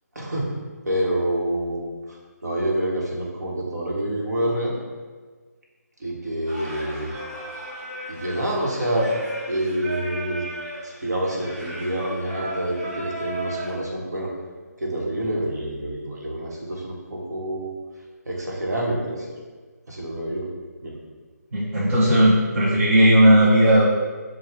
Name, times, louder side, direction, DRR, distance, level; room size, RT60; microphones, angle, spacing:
voice 1, 0.1-0.5 0.8-4.8 6.0-7.1 7.6-7.7 8.1-9.1 9.5-10.5 10.8-14.3 14.8-17.7 18.2-19.3 19.9-20.5 20.8-21.0, right 1 dB, 70° right, -2 dB, 1.2 m, -27 dB
Singing, 6.5-13.7, right 1 dB, 30° right, 1.4 m, -35 dB
voice 2, 21.5-23.9, equal, 50° right, -6 dB, 0.8 m, -16 dB
4.7 x 2.3 x 4.6 m, 1.4 s
figure-of-eight pair, 155°, 9 cm